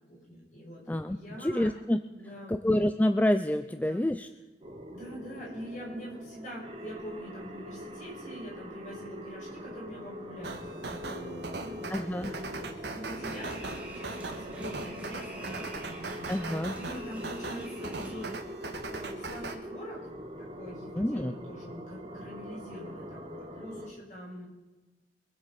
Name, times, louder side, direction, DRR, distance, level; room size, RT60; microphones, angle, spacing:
voice 1, 0.1-0.8 1.1-1.8 2.2-2.6 3.7-4.0 4.9-13.6 13.8-15.7 16.3-20.0 20.5-24.5, equal, 45° left, -3 dB, 6.3 m, -44 dB
voice 2, 0.9-2.0 2.5-4.3 11.9-12.3 16.3-16.8 21.0-21.3, left 1 dB, 10° left, 10 dB, 0.4 m, -28 dB
sound 1, 4.6-23.9, equal, 30° right, 2.2 m, -43 dB
block wave, 10.4-19.5, right 3 dB, 80° right, 1.6 m, -40 dB
sound 2, 13.1-18.4, right 1 dB, 10° right, 1.9 m, -46 dB
24.0 x 8.1 x 5.9 m, 1.1 s
head